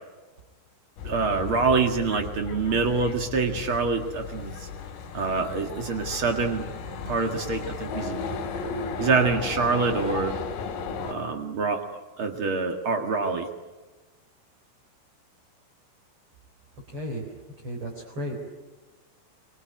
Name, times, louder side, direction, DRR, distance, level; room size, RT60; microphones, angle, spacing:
sound 1, 1.0-11.1, left 5 dB, 65° left, 4.7 m, -35 dB
voice 1, 1.0-4.7 5.1-6.6 7.1-8.2 9.0-10.4 11.0-11.8 12.2-13.5, right 4 dB, 85° right, 4 dB, 1.1 m, -26 dB
voice 2, 16.9-18.4, equal, 30° right, 0 dB, 4.5 m, -35 dB
25.0 x 24.5 x 9.4 m, 1.2 s
omnidirectional pair, 5.7 m